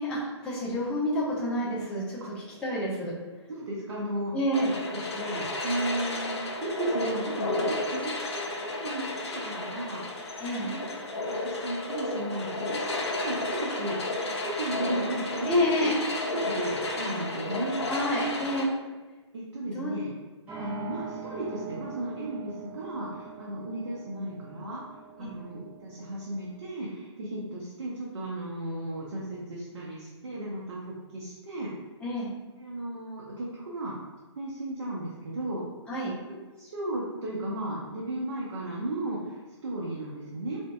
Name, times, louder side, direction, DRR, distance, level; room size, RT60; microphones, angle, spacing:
voice 1, 0.0-2.2 2.6-3.1 4.3-4.7 10.4-10.7 12.9-13.0 15.5-15.9 17.9-18.6 19.7-20.0 25.2-25.3 32.0-32.3 35.9-36.1, left 1 dB, 5° left, -9 dB, 0.6 m, -28 dB
voice 2, 3.5-4.3 4.6-10.3 10.6-10.9 11.1-15.9 16.3-17.9 19.3-20.1 20.6-24.8 25.2-31.7 32.6-34.0 34.3-35.6 36.3-40.6, right 1 dB, 60° right, -6 dB, 0.8 m, -35 dB
sound 1, 4.5-18.7, left 2 dB, 65° left, 0.6 m, -32 dB
sound 2, 8.3-12.0 12.2-12.3 20.5-26.7, right 6 dB, 10° right, 1.1 m, -44 dB
3.8 x 2.7 x 2.3 m, 1.3 s
figure-of-eight pair, 135°, 15 cm